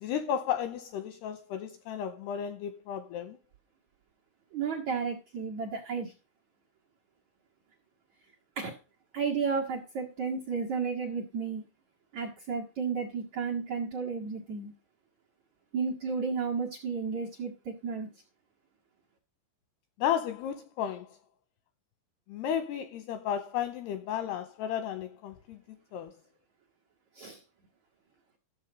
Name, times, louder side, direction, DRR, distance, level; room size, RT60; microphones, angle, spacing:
voice 1, 0.0-3.4 20.0-21.1 22.3-25.6 25.9-26.1, left 9 dB, 85° left, 2.4 m, -33 dB
voice 2, 4.5-6.1 8.6-8.7 9.1-11.6 12.1-14.7 15.7-18.1 27.2-27.4, right 5 dB, 65° right, 1.8 m, -33 dB
13.5 x 7.3 x 5.2 m
omnidirectional pair, 5.5 m